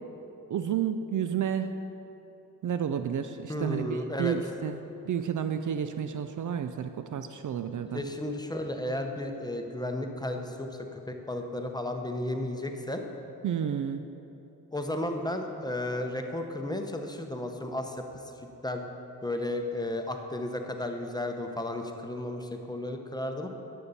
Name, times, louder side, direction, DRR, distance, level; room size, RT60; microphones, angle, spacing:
voice 1, 0.5-1.7 2.6-4.8 5.0-8.0 13.4-14.0, right 8 dB, 50° right, 9 dB, 0.5 m, -31 dB
voice 2, 3.5-4.4 7.9-13.0 14.7-18.0 18.6-18.8 19.2-23.5, left 1 dB, 10° left, 4 dB, 0.9 m, -33 dB
9.9 x 6.9 x 4.2 m, 2.9 s
supercardioid pair, 50°, 38 cm